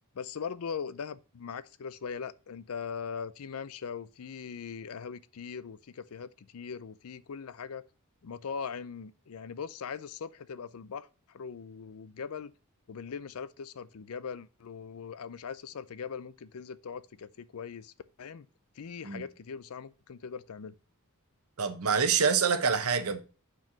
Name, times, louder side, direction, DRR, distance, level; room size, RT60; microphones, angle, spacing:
voice 1, 0.1-7.8 8.2-12.5 12.9-17.9 18.2-18.5 18.8-20.7, left 6 dB, 70° left, 0.5 m, -40 dB
voice 2, 21.6-23.2, right 6 dB, 70° right, 1.0 m, -26 dB
6.0 x 4.7 x 5.8 m
head